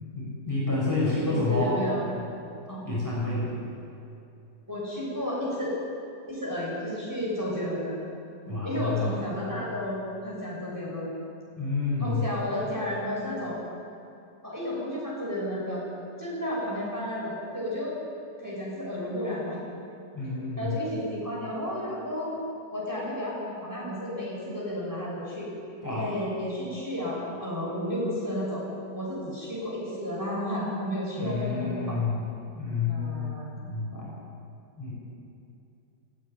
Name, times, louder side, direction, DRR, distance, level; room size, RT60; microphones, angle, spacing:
voice 1, 0.1-1.9 2.8-3.5 8.5-9.3 11.6-12.3 20.1-20.8 25.8-26.1 31.2-32.3 32.5-33.3 33.6-34.1 34.7-34.9, left 3 dB, 10° left, -7 dB, 6.1 m, -29 dB
voice 2, 1.1-2.1 2.7-2.9 3.2-3.3 4.7-5.8 6.3-7.9 8.6-11.1 12.0-13.6 14.4-15.8 16.2-17.9 18.4-19.6 20.6-22.3 22.7-25.5 25.9-28.6 28.9-32.0 32.9-33.5, left 1 dB, 10° right, -6 dB, 6.9 m, -32 dB
18.0 x 16.5 x 9.7 m, 2.6 s
omnidirectional pair, 1.9 m